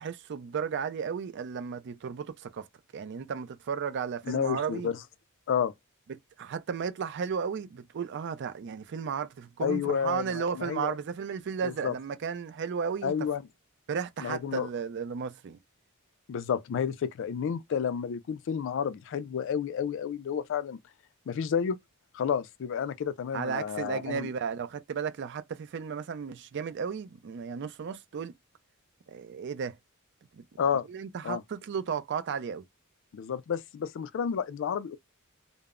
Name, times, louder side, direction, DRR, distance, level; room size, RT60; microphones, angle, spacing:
voice 1, 0.0-2.7 2.9-4.9 6.1-13.1 13.9-15.6 23.3-28.3 29.1-29.8 30.3-30.4 30.9-32.6, right 6 dB, 55° right, 0.4 m, -34 dB
voice 2, 4.3-5.0 5.5-5.7 9.6-11.0 11.6-11.9 13.0-13.4 14.2-14.7 16.3-20.8 21.3-21.8 22.1-24.3 30.6-30.9 31.2-31.4 33.1-35.0, left 7 dB, 60° left, 0.3 m, -30 dB
2.0 x 2.0 x 3.5 m
head